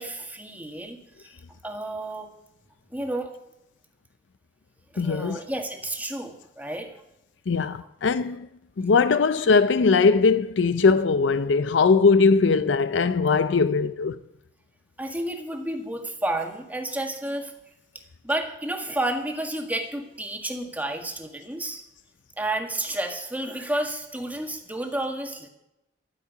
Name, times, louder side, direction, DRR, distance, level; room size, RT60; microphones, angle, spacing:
voice 1, 0.0-1.3 1.6-2.3 2.9-3.3 4.9-6.9 7.8-7.9 15.0-17.5 18.2-21.8 22.4-25.5, right 1 dB, 10° right, 1.7 m, -31 dB
voice 2, 5.0-5.4 7.5-8.5 8.8-14.2, left 4 dB, 80° left, 0.5 m, -20 dB
13.0 x 7.2 x 9.6 m
head